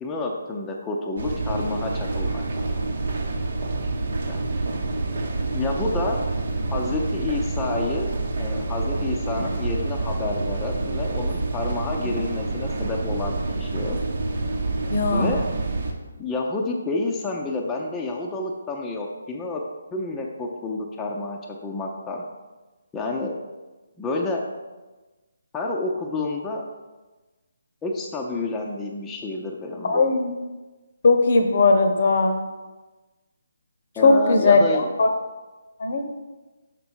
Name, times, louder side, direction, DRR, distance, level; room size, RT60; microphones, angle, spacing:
voice 1, 0.0-2.4 4.3-4.5 5.5-6.2 6.7-8.1 8.4-14.0 15.1-15.4 16.2-19.6 19.9-22.3 22.9-23.3 24.0-24.4 25.5-26.6 27.8-30.0 34.0-34.8, left 2 dB, 10° left, -1 dB, 0.6 m, -29 dB
sound 1, 1.2-15.9, right 3 dB, 60° right, 0.9 m, -27 dB
voice 2, 14.9-15.4 29.8-30.3 31.0-32.4 34.0-35.1 35.8-36.0, left 3 dB, 50° left, 6 dB, 0.8 m, -19 dB
6.0 x 5.6 x 4.4 m, 1.2 s
figure-of-eight pair, 145°, 0 cm